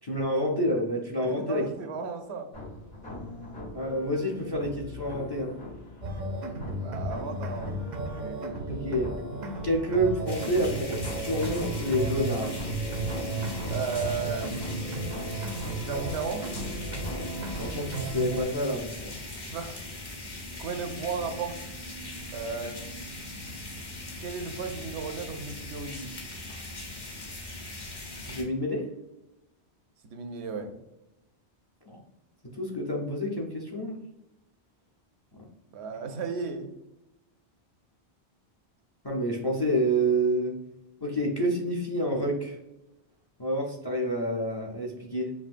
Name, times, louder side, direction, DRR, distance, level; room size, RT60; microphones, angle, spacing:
voice 1, 0.0-1.6 3.7-5.5 8.7-9.1 9.6-12.5 17.1-17.3 17.6-19.1 28.3-28.8 31.9-32.0 32.6-34.0 39.0-40.5 41.0-42.6 43.4-45.3, equal, 30° left, -1 dB, 0.4 m, -28 dB
voice 2, 1.2-2.5 6.8-7.8 8.1-8.4 13.6-14.7 15.8-16.5 19.5-19.8 20.6-21.7 22.3-22.9 24.2-26.2 30.0-30.8 35.7-36.7, right 5 dB, 80° right, 6 dB, 0.9 m, -35 dB
sound 1, 2.5-18.5, left 2 dB, 70° left, 1.6 m, -41 dB
sound 2, 6.0-18.4, right 2 dB, 55° right, 0.5 m, -34 dB
sound 3, 10.3-28.4, left 2 dB, 50° left, 1.1 m, -40 dB
5.6 x 2.6 x 2.5 m, 0.89 s
omnidirectional pair, 1.1 m